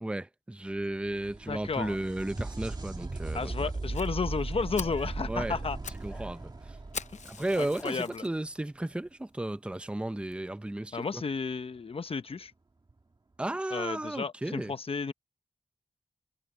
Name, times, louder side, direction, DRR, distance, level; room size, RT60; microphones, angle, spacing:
voice 1, 0.0-3.7 5.3-5.6 6.0-6.8 7.2-11.2 13.4-14.7, right 1 dB, 10° right, 0.6 m, -34 dB
sound 1, 0.8-8.4 11.8-11.9 12.9-13.0, right 3 dB, 35° right, 2.1 m, -38 dB
voice 2, 1.5-2.0 3.3-5.8 7.6-8.2 10.9-12.5 13.7-15.1, left 5 dB, 55° left, 0.9 m, -33 dB
Fire, 3.9-4.1 4.5-4.6 4.8-5.1 5.6-6.1 6.3-6.4 6.9-8.3 8.9-9.0 9.5-9.6 9.9-10.0 10.3-10.4, left 6 dB, 90° left, 0.7 m, -41 dB
sound 2, 4.8-5.3 6.0-7.0 7.6-8.6, left 1 dB, 10° left, 2.0 m, -54 dB
wide cardioid pair, 105°, 12 cm